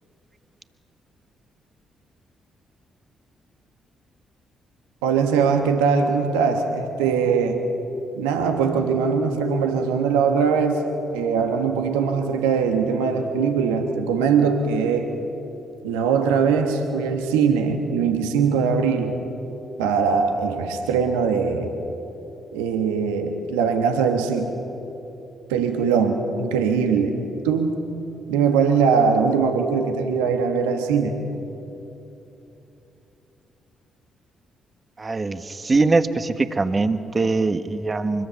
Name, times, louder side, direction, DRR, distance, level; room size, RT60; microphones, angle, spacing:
voice 1, 5.0-7.6 8.1-15.2 15.8-19.1 19.8-21.7 22.5-24.5 25.5-27.2 27.4-27.9 28.3-31.2, right 6 dB, 80° right, 5 dB, 1.5 m, -21 dB
voice 2, 35.0-38.3, right 3 dB, 35° right, 10 dB, 1.4 m, -22 dB
24.5 x 22.0 x 7.1 m, 3.0 s
hypercardioid pair, 45°, 0 cm